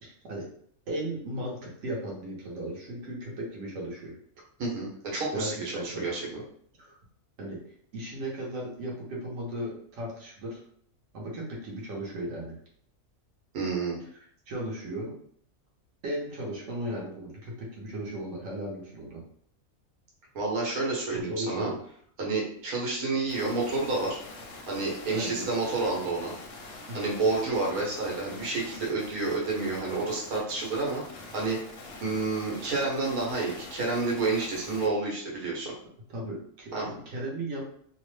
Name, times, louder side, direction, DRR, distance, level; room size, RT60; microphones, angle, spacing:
voice 1, 0.0-0.5 0.9-4.1 5.3-6.4 6.8-7.0 7.4-7.6 7.9-10.6 11.1-12.5 14.1-15.1 16.0-19.2 21.1-21.8 25.1-25.5 26.9-27.2 36.1-37.6, right 1 dB, 60° right, -3 dB, 1.1 m, -36 dB
voice 2, 4.6-6.3 13.5-14.0 20.3-21.7 22.2-24.2 24.7-26.3 26.9-31.6 32.0-35.7 36.7-36.9, right 3 dB, 85° right, -3 dB, 1.3 m, -29 dB
sound 1, 23.3-34.9, left 2 dB, 55° left, 0.7 m, -45 dB
2.9 x 2.1 x 3.1 m, 0.62 s
omnidirectional pair, 1.5 m